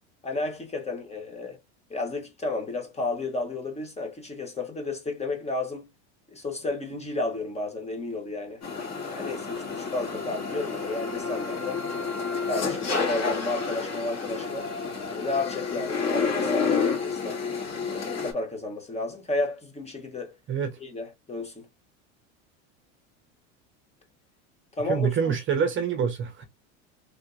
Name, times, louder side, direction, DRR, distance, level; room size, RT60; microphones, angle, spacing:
voice 1, 0.2-1.6 1.9-5.9 6.3-8.6 9.1-11.8 12.3-14.7 15.1-17.4 17.9-20.3 20.8-21.7 24.8-25.3, left 2 dB, 20° left, 1.0 m, -32 dB
sound 1, 8.6-18.3, left 5 dB, 45° left, 2.1 m, -30 dB
voice 2, 24.9-26.4, right 7 dB, 30° right, 0.8 m, -26 dB
3.3 x 2.8 x 2.4 m
supercardioid pair, 105°, 36 cm